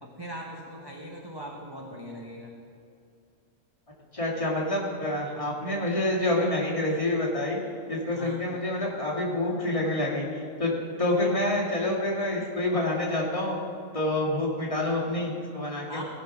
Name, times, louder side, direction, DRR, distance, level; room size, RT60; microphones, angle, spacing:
voice 1, 0.0-2.5 8.1-8.4 15.9-16.0, equal, 20° right, -1 dB, 1.0 m, -40 dB
voice 2, 4.1-7.6 7.9-10.7 11.0-13.6 13.9-16.0, left 1 dB, 20° left, -5 dB, 2.2 m, -27 dB
16.5 x 5.7 x 6.0 m, 2.5 s
omnidirectional pair, 1.6 m